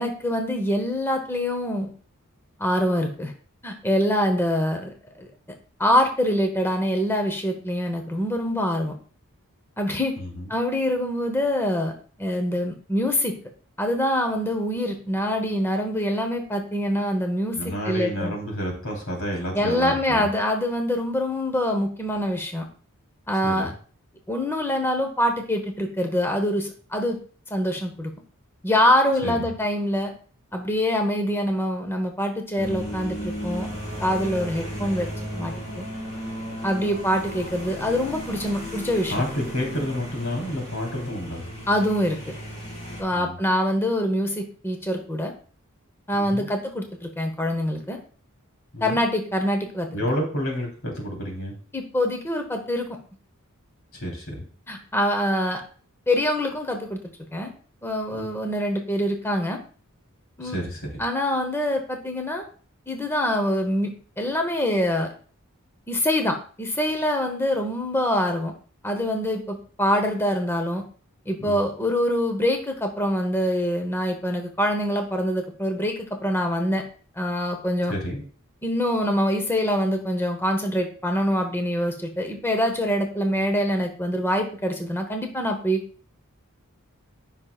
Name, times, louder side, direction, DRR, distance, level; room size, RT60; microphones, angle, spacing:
voice 1, 0.0-1.9 2.6-3.3 3.6-5.3 5.8-9.0 9.8-10.1 10.5-11.9 12.2-13.3 13.8-18.3 19.5-22.7 23.3-23.7 24.3-27.2 27.5-28.1 28.6-30.1 30.5-33.7 34.0-35.1 35.3-35.9 36.6-39.2 41.7-42.3 43.0-45.3 46.1-48.0 48.8-49.9 51.7-52.9 54.7-55.6 56.1-57.0 57.3-57.5 57.8-59.6 60.4-60.6 61.0-62.5 62.9-63.9 64.2-65.1 65.9-68.5 68.8-70.8 71.3-76.8 77.2-77.9 78.6-85.8, equal, 10° left, 4 dB, 0.9 m, -25 dB
voice 2, 10.2-10.5 17.5-20.3 23.4-23.7 29.2-29.5 39.1-41.4 43.1-43.4 46.1-46.5 48.7-49.0 49.9-51.6 53.9-54.4 58.1-58.3 60.4-61.0 71.4-71.6 77.8-78.2, equal, 75° left, 0 dB, 3.4 m, -30 dB
sound 1, 32.6-43.0, equal, 30° left, 4.1 m, -35 dB
15.0 x 5.7 x 2.3 m, 0.42 s
head